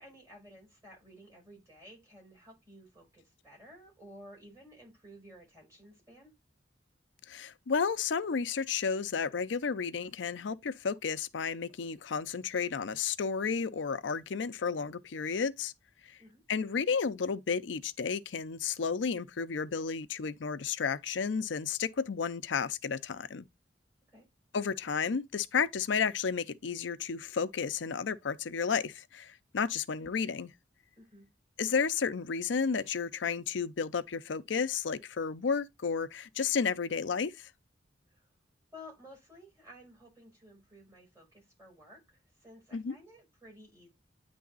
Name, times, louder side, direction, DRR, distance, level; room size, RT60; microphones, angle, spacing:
voice 1, 0.0-6.3 16.2-16.4 24.1-24.3 31.0-31.3 38.1-38.3 38.7-43.9, equal, 15° right, 5.2 m, -54 dB
voice 2, 7.3-15.7 16.0-16.2 16.5-23.5 24.5-30.5 31.6-37.5 42.7-43.0, left 6 dB, 90° left, 0.5 m, -32 dB
9.4 x 3.4 x 3.9 m
head